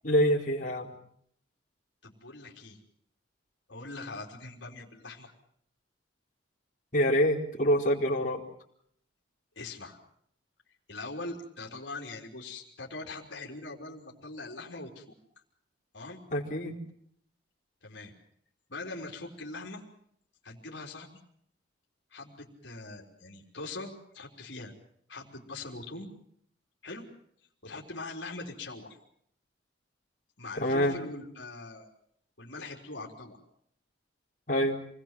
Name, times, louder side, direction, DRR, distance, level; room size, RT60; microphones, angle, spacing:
voice 1, 0.0-0.9 6.9-8.4 16.3-16.8 30.6-31.0 34.5-34.8, equal, 40° left, -3 dB, 4.4 m, -26 dB
voice 2, 2.0-2.8 3.7-5.3 9.6-10.0 10.9-15.1 15.9-16.2 17.8-18.1 18.7-19.8 20.4-21.2 22.1-24.7 25.1-26.1 26.8-27.1 27.6-29.0 30.4-31.9 32.4-33.4, left 2 dB, 70° left, 0 dB, 3.8 m, -42 dB
28.0 x 20.0 x 7.6 m, 0.69 s
head